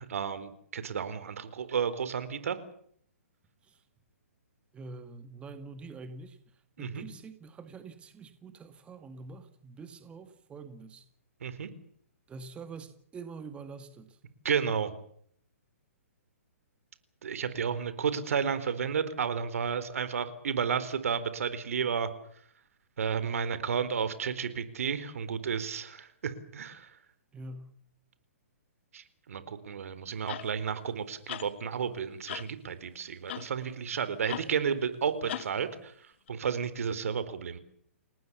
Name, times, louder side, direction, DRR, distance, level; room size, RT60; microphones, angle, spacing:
voice 1, 0.0-2.6 6.8-7.0 11.4-11.7 14.4-14.9 17.2-22.1 23.0-26.9 28.9-35.9 36.3-37.6, right 7 dB, 70° right, 13 dB, 4.2 m, -32 dB
voice 2, 4.7-6.4 6.8-11.1 12.3-14.2 27.3-27.7, right 4 dB, 15° right, 9 dB, 2.0 m, -45 dB
sound 1, 30.3-30.5 31.3-31.5 32.3-32.5 33.3-33.5 34.3-34.5 35.3-35.5 36.3-36.4, left 12 dB, 50° left, 1.0 m, -38 dB
29.0 x 19.0 x 7.2 m, 0.64 s
hypercardioid pair, 140°, 8 cm